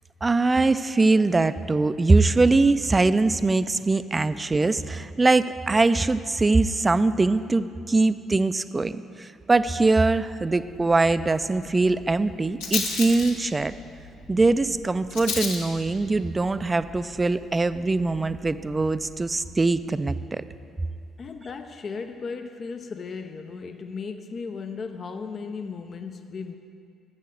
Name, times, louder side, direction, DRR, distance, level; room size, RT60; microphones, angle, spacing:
voice 1, 0.2-13.7 14.3-20.4, right 3 dB, 25° right, 14 dB, 0.3 m, -22 dB
Rattle, 9.6-19.5, left 4 dB, 80° left, 1.3 m, -37 dB
voice 2, 21.2-26.6, left 5 dB, 40° left, 7 dB, 0.4 m, -36 dB
7.4 x 6.4 x 7.4 m, 2.4 s
figure-of-eight pair, 45°, 0 cm